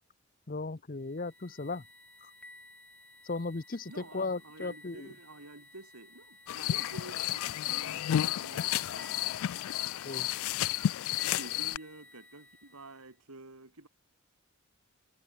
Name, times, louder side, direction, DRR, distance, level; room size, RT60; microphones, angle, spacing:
voice 1, 0.5-1.8 2.2-2.3 3.2-5.1 10.0-10.3, left 3 dB, 40° left, 0.7 m, -36 dB
sound 1, 1.0-13.1, left 2 dB, 5° left, 4.6 m, -55 dB
voice 2, 3.9-9.4 11.2-13.9, right 2 dB, 85° right, 3.0 m, -50 dB
sound 2, 6.5-11.8, left 11 dB, 70° left, 0.3 m, -32 dB
head